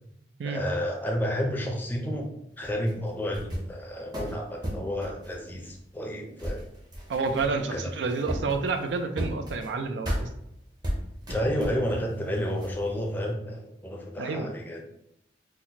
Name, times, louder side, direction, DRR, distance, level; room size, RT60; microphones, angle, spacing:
voice 1, 0.4-2.3 2.6-6.6 7.7-7.8 11.3-14.8, equal, 10° left, 0 dB, 0.5 m, -31 dB
sound 1, 2.6-3.8 4.1-6.1 6.4-7.8 8.1-9.7 10.0-10.3 10.8-12.1 12.3-13.2, equal, 25° right, 0.7 m, -34 dB
voice 2, 7.1-10.3 14.2-14.5, right 4 dB, 85° right, 7 dB, 0.4 m, -29 dB
3.9 x 2.1 x 2.8 m, 0.79 s
head